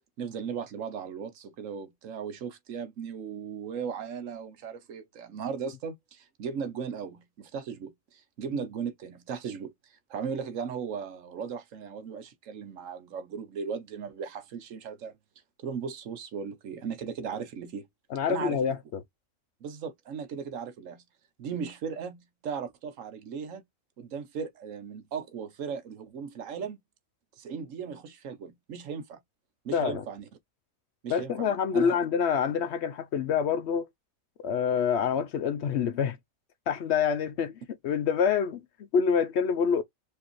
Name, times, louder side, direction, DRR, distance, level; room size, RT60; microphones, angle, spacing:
voice 1, 0.2-9.7 10.1-15.2 15.6-17.9 18.3-18.6 19.6-21.0 21.4-23.6 24.0-26.8 27.4-29.2 29.6-30.3 31.0-32.0, right 6 dB, 75° right, 1.2 m, -37 dB
voice 2, 18.1-19.0 29.7-30.0 31.1-33.9 34.4-36.2 36.7-39.8, left 7 dB, 65° left, 0.8 m, -27 dB
4.6 x 2.7 x 3.0 m
omnidirectional pair, 1.4 m